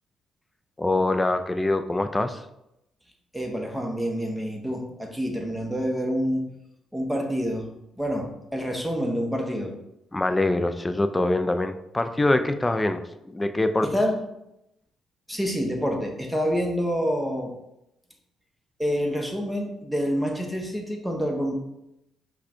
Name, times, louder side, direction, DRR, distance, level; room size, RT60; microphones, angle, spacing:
voice 1, 0.8-2.4 10.1-13.9, left 2 dB, 15° left, 8 dB, 0.4 m, -24 dB
voice 2, 3.3-6.5 6.9-7.7 8.0-9.7 13.8-14.2 15.3-17.5 18.8-21.6, equal, 5° right, 2 dB, 0.9 m, -27 dB
5.0 x 2.3 x 4.3 m, 0.85 s
cardioid pair, 90°, 0 cm